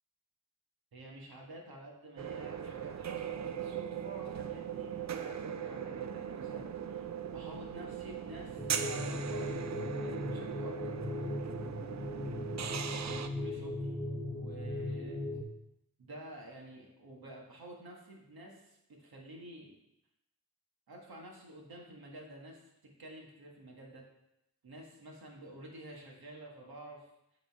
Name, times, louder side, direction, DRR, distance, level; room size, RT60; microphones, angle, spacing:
voice 1, 0.9-7.0 7.3-11.0 12.9-13.9 14.3-15.2 16.0-19.7 20.9-24.1 24.6-27.1, right 1 dB, 80° right, -1 dB, 1.6 m, -50 dB
sound 1, 2.2-13.3, right 8 dB, 50° right, 0.5 m, -39 dB
sound 2, 8.6-15.4, left 1 dB, 10° left, 0.8 m, -38 dB
8.1 x 3.8 x 4.7 m, 0.85 s
cardioid pair, 60°, 36 cm